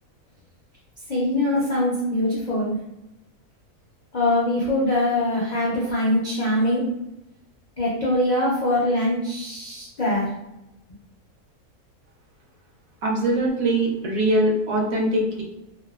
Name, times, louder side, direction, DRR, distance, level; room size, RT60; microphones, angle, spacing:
voice 1, 1.1-2.8 4.1-6.9 7.8-10.3, left 1 dB, 65° left, -7 dB, 0.4 m, -23 dB
voice 2, 13.0-15.4, right 1 dB, 75° right, -2 dB, 1.0 m, -22 dB
2.7 x 2.1 x 2.2 m, 0.88 s
omnidirectional pair, 1.6 m